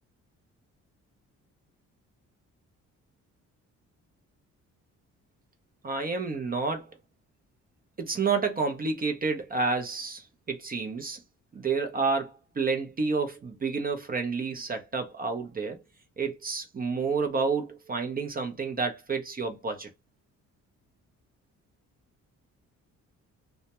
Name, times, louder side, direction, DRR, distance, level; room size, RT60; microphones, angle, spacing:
voice 1, 5.8-6.9 8.0-11.2 11.5-15.8 16.2-19.9, right 4 dB, 30° right, 0.5 m, -30 dB
2.1 x 2.1 x 2.8 m
cardioid pair, 90°, 30 cm